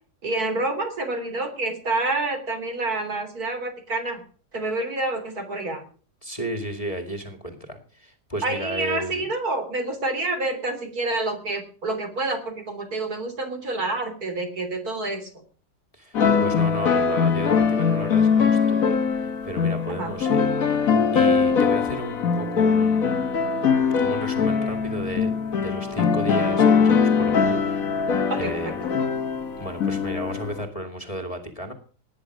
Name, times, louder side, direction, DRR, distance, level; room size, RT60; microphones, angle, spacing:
voice 1, 0.2-4.2 4.5-5.8 8.4-15.3 19.9-20.1 28.3-28.7, right 2 dB, 60° right, 6 dB, 3.8 m, -28 dB
voice 2, 6.2-9.3 15.9-20.7 21.1-23.3 24.0-27.6 28.4-28.8 29.6-31.7, equal, 20° left, 6 dB, 2.2 m, -34 dB
sound 1, 16.1-30.6, left 6 dB, 55° left, 1.7 m, -22 dB
18.5 x 10.0 x 6.2 m, 0.42 s
omnidirectional pair, 1.8 m